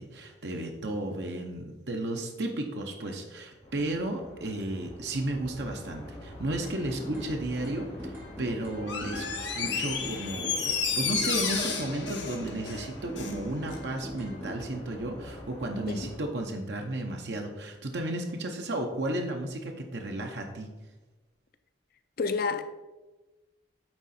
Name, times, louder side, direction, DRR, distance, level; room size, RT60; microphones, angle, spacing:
voice 1, 0.0-9.3 9.5-20.7, right 1 dB, 65° right, 0.7 m, -33 dB
sound 1, 3.6-16.2, left 1 dB, 35° left, 1.8 m, -45 dB
sound 2, 6.6-7.3 7.6-9.3 9.6-11.3 11.6-13.4 13.7-14.5, right 1 dB, 10° right, 2.0 m, -41 dB
Door, 8.8-13.4 13.7-13.8, left 6 dB, 70° left, 0.9 m, -32 dB
voice 2, 22.2-22.6, left 4 dB, 50° left, 0.4 m, -29 dB
8.9 x 3.7 x 4.2 m
head